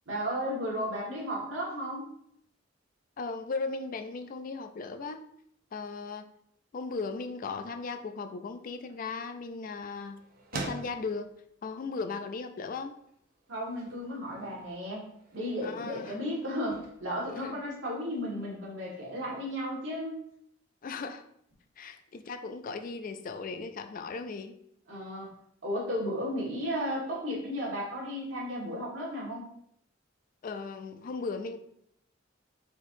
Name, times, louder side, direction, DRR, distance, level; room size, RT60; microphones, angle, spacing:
voice 1, 0.0-2.1 13.5-15.0 15.3-20.2 24.9-25.3 25.6-29.5, equal, 80° right, -4 dB, 1.7 m, -34 dB
voice 2, 3.2-5.2 5.7-6.3 6.7-10.2 10.5-11.3 11.6-12.9 15.6-16.1 17.4-17.5 20.8-21.2 21.8-24.6 30.4-31.6, left 4 dB, 45° left, 8 dB, 0.4 m, -37 dB
sound 1, 8.5-18.3, right 2 dB, 50° right, 0.7 m, -47 dB
4.4 x 4.4 x 2.6 m, 0.72 s
head